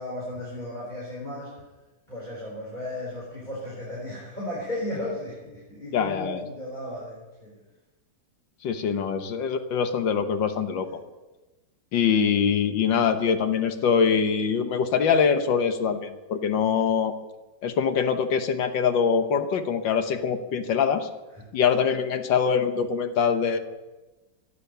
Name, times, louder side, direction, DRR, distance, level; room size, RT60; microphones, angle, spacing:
voice 1, 0.0-1.6 2.1-7.5 8.9-9.0 10.8-11.0, left 1 dB, 25° left, -6 dB, 5.0 m, -35 dB
voice 2, 5.9-6.4 8.6-10.9 11.9-17.1 17.6-21.1 21.5-23.6, left 6 dB, 85° left, 7 dB, 1.8 m, -23 dB
15.5 x 11.5 x 6.9 m, 1.1 s
omnidirectional pair, 2.0 m